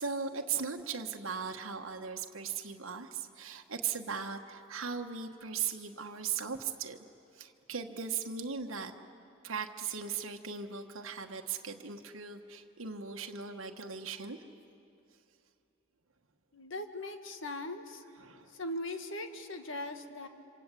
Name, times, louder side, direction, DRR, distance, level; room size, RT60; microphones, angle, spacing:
voice 1, 0.0-7.0 7.3-8.9 9.4-14.4 18.2-18.5, right 6 dB, 70° right, 3 dB, 1.3 m, -38 dB
voice 2, 16.5-18.0 18.5-20.3, left 1 dB, 65° left, 7 dB, 1.7 m, -39 dB
27.0 x 26.0 x 8.3 m, 2.6 s
head